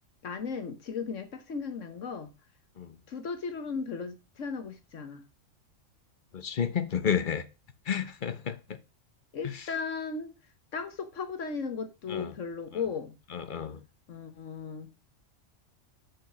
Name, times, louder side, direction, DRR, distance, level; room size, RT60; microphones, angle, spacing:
voice 1, 0.2-2.3 3.1-5.2 9.3-10.3 10.7-13.1 14.1-15.0, left 5 dB, 70° left, 1.5 m, -36 dB
voice 2, 6.3-7.5 7.9-8.8 9.4-9.6 12.1-12.3 13.3-13.8, left 8 dB, 45° left, 0.8 m, -31 dB
7.6 x 5.0 x 6.0 m
omnidirectional pair, 1.4 m